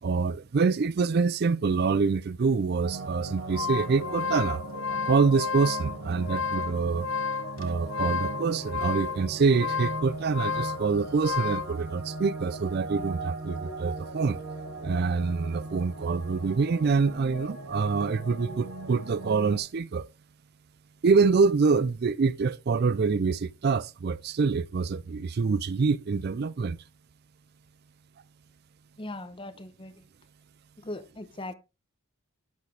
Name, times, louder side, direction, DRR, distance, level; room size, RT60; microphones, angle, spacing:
voice 1, 0.0-4.6 5.1-7.1 7.6-14.4 14.8-20.1 21.0-26.8, right 4 dB, 45° right, 0.4 m, -26 dB
sound 1, 2.8-19.6, right 2 dB, 85° right, 2.5 m, -39 dB
sound 2, 3.3-11.7, left 5 dB, 60° left, 0.8 m, -32 dB
voice 2, 29.0-30.0 30.8-31.5, left 1 dB, 25° left, 0.9 m, -39 dB
11.0 x 8.2 x 3.3 m
head